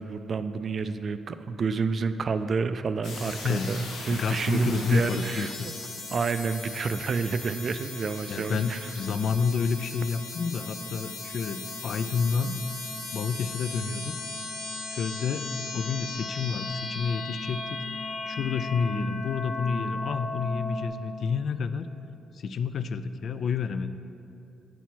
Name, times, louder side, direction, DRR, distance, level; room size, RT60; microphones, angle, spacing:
voice 1, 0.0-5.7 6.1-8.9, right 4 dB, 45° right, 11 dB, 0.3 m, -29 dB
sound 1, 3.0-20.9, left 3 dB, 80° left, 1.2 m, -37 dB
voice 2, 4.1-5.5 8.3-12.6 13.1-14.2 14.8-17.8 18.3-21.9 22.3-23.9, left 5 dB, 60° left, 11 dB, 0.3 m, -29 dB
8.1 x 4.3 x 6.0 m, 2.7 s
cardioid pair, 90°, 0 cm